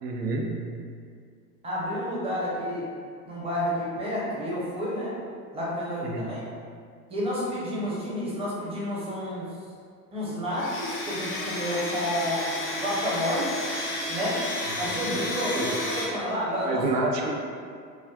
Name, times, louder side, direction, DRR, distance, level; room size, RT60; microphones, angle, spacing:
voice 1, 0.0-0.6 6.0-6.4 15.0-15.1 15.5-15.8 16.6-17.3, right 2 dB, 80° right, 0 dB, 0.6 m, -28 dB
voice 2, 1.6-2.9 3.3-5.1 5.5-6.4 7.1-9.4 10.1-13.5 14.1-14.4 14.8-16.8, equal, 10° right, -7 dB, 0.7 m, -30 dB
Domestic sounds home sounds, 10.5-16.0, left 1 dB, 30° left, 0.5 m, -32 dB
3.1 x 2.3 x 2.3 m, 2.2 s
figure-of-eight pair, 90°, 48 cm